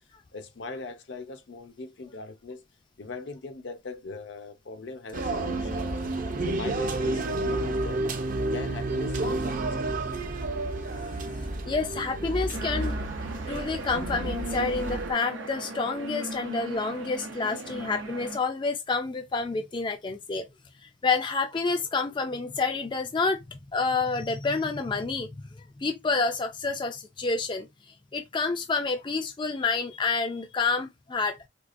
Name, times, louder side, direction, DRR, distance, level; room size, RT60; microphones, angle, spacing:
voice 1, 0.3-2.6 3.0-5.9 6.4-8.0 8.5-9.9, left 3 dB, 70° left, 0.6 m, -40 dB
sound 1, 5.1-15.1, right 2 dB, 45° right, 0.6 m, -30 dB
voice 2, 11.0-13.0 13.5-20.5 20.8-25.4 25.8-27.7 28.1-31.4, left 4 dB, 25° left, 0.3 m, -29 dB
sound 2, 12.5-18.4, right 2 dB, 85° right, 0.7 m, -38 dB
4.5 x 2.4 x 2.5 m
head